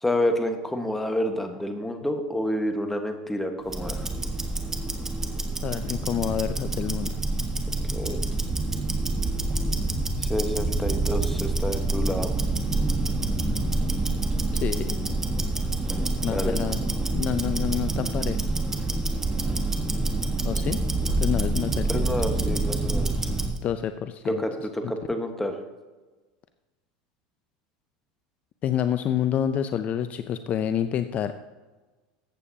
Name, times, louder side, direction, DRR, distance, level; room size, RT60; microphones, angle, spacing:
voice 1, 0.0-4.1 7.9-8.2 10.2-12.3 16.3-16.6 21.9-23.3 24.2-25.6, left 1 dB, 5° left, 5 dB, 1.3 m, -29 dB
Tick-tock, 3.6-23.6, right 2 dB, 10° right, 1.4 m, -27 dB
voice 2, 5.6-7.1 14.5-15.1 16.2-16.8 17.1-18.4 20.4-20.8 21.2-22.1 23.6-24.4 28.6-31.3, left 9 dB, 40° left, 10 dB, 0.5 m, -28 dB
14.5 x 8.4 x 2.8 m, 1.2 s
supercardioid pair, 110°, 4 cm